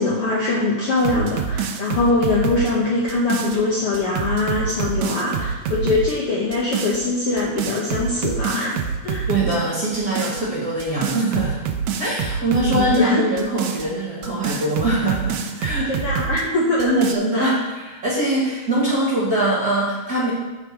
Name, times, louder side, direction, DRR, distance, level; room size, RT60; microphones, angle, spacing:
voice 1, 0.0-9.3 12.5-13.2 15.9-16.9 17.3-17.5, left 2 dB, 65° left, -4 dB, 1.5 m, -22 dB
sound 1, 1.0-3.6 3.9-6.1 6.5-7.0 7.4-9.6 9.9-10.4 10.8-13.0 13.4-16.4 16.8-17.1, right 7 dB, 85° right, 1.5 m, -26 dB
voice 2, 9.3-11.6 12.0-15.9 16.8-20.3, right 1 dB, 35° right, -5 dB, 1.7 m, -22 dB
13.0 x 4.7 x 4.6 m, 1.1 s
omnidirectional pair, 3.9 m